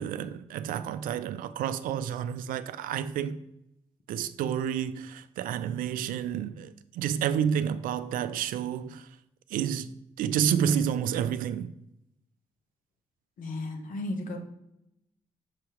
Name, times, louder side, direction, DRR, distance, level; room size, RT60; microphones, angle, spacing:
voice 1, 0.0-3.4 4.1-9.1 9.5-9.9 10.2-11.7, right 9 dB, 80° right, 0.4 m, -30 dB
voice 2, 13.4-14.4, left 2 dB, 70° left, 1.1 m, -34 dB
6.5 x 2.8 x 5.1 m
supercardioid pair, 55°, 14 cm